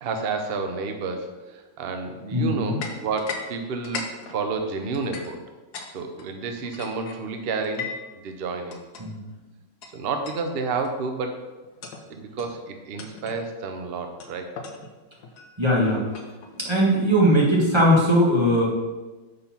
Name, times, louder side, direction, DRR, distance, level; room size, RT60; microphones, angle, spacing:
voice 1, 0.0-5.4 5.9-7.9 8.2-8.8 9.9-11.4 12.1-14.6, right 4 dB, 75° right, 5 dB, 0.5 m, -30 dB
voice 2, 2.3-2.8 9.0-9.2 15.6-16.0 16.5-18.6, equal, 15° right, -5 dB, 1.5 m, -19 dB
sound 1, 2.8-3.5 3.7-5.9 6.2-8.1 8.7-9.0 9.8-9.9 10.2-10.5 10.8-11.1 11.6-12.0 12.4-12.6 13.0-13.4 14.2-16.7, left 5 dB, 65° left, 1.3 m, -38 dB
6.7 x 4.2 x 5.8 m, 1.2 s
omnidirectional pair, 2.1 m